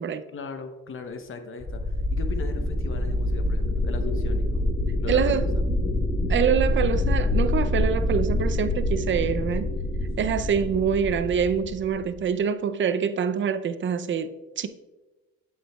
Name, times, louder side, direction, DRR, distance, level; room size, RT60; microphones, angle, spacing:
voice 1, 0.3-4.6 5.0-5.5 10.0-10.4, left 5 dB, 45° left, 0.9 m, -38 dB
sound 1, 1.6-12.2, left 1 dB, 15° left, 1.3 m, -26 dB
voice 2, 5.1-5.5 6.3-9.7 10.2-14.7, right 7 dB, 40° right, 0.5 m, -25 dB
8.0 x 7.6 x 2.3 m
cardioid pair, 90°, 30 cm